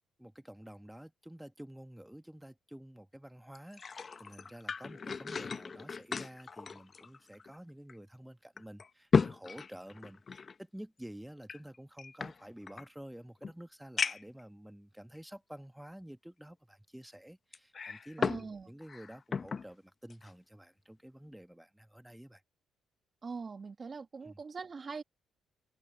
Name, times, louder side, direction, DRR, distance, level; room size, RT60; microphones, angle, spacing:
voice 1, 0.2-22.4 24.2-24.4, right 1 dB, 5° right, 1.4 m, -50 dB
sound 1, 3.5-7.6 7.9-8.0 8.6-10.6 11.4-12.9 13.4-13.5 14.0-14.4 15.2-15.3 17.5-18.5 18.8-19.7 20.1-20.3, left 5 dB, 40° left, 0.8 m, -35 dB
voice 2, 18.2-18.7 23.2-25.0, right 5 dB, 35° right, 2.0 m, -42 dB
cardioid pair, 90°, 0 cm